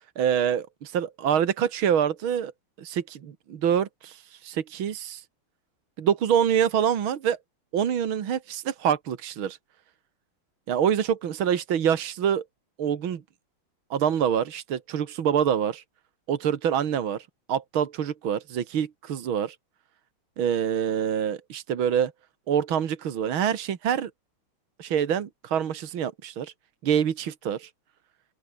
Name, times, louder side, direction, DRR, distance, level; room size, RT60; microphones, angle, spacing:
voice 1, 0.2-2.5 2.8-5.2 6.0-7.4 7.7-9.6 10.7-12.4 12.8-13.2 13.9-15.8 16.3-19.6 20.4-22.1 22.5-24.1 24.8-26.5 26.8-27.7, right 8 dB, 75° right, 2.4 m, -26 dB
open air
omnidirectional pair, 2.3 m